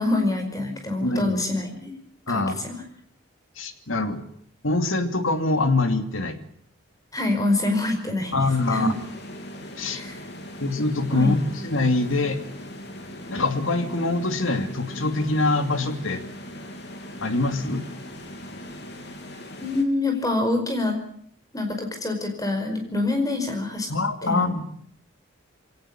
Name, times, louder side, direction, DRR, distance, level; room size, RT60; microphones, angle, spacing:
voice 1, 0.0-1.9 2.3-2.8 7.1-8.4 8.7-8.9 9.9-10.2 11.1-11.3 19.6-21.0 21.5-23.9 24.2-24.5, left 2 dB, 15° left, 5 dB, 5.0 m, -25 dB
voice 2, 1.0-1.4 2.3-2.6 3.6-4.2 4.6-6.4 8.3-9.0 9.8-10.0 10.6-12.4 13.3-16.2 17.2-17.8 23.9-24.7, left 2 dB, 70° left, 8 dB, 2.6 m, -24 dB
sound 1, 8.5-19.8, equal, 50° left, 3.6 m, -39 dB
22.5 x 18.0 x 8.8 m, 0.65 s
head